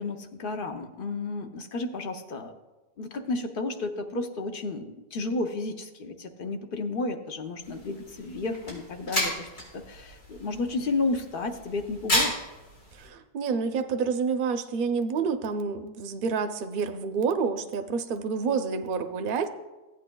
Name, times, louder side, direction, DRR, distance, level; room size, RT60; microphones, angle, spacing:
voice 1, 0.0-2.5 3.0-9.5 9.7-12.3, left 3 dB, 55° left, 6 dB, 0.8 m, -32 dB
sound 1, 7.6-13.1, left 1 dB, 80° left, 3.9 m, -33 dB
voice 2, 12.9-19.5, right 5 dB, 55° right, 7 dB, 0.7 m, -28 dB
15.5 x 8.4 x 2.2 m, 1.1 s
omnidirectional pair, 1.2 m